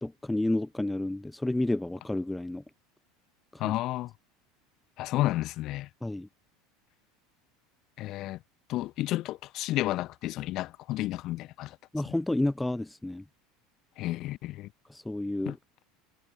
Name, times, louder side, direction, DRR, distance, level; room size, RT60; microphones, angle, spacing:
voice 1, 0.0-2.6 3.5-3.7 6.0-6.3 11.9-13.2 14.9-15.6, left 1 dB, 5° left, 0.7 m, -30 dB
voice 2, 3.6-4.1 5.0-5.9 8.0-8.4 8.7-11.8 14.0-14.7 15.5-15.6, left 16 dB, 55° left, 1.7 m, -31 dB
hypercardioid pair, 90°, 0 cm